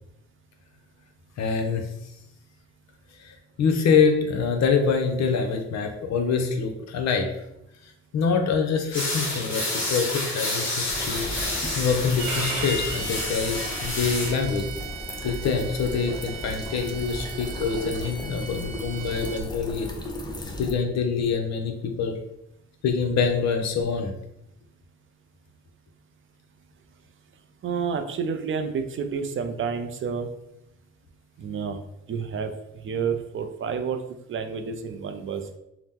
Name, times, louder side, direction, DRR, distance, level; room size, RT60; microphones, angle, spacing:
voice 1, 1.4-1.9 3.2-7.3 8.1-11.3 11.7-14.6 15.2-19.9 20.6-22.2 22.8-24.1, left 5 dB, 60° left, 5 dB, 0.6 m, -25 dB
sound 1, 8.9-14.3, left 1 dB, 40° left, 1.2 m, -29 dB
sound 2, 10.9-20.7, left 1 dB, 15° left, 0.5 m, -36 dB
Bowed string instrument, 12.2-19.4, right 4 dB, 70° right, 0.8 m, -37 dB
voice 2, 27.6-30.3 31.4-31.8 32.1-32.5 32.8-34.0 34.3-35.5, right 6 dB, 45° right, 6 dB, 0.4 m, -29 dB
2.8 x 2.0 x 3.5 m, 0.84 s
cardioid pair, 90°, 30 cm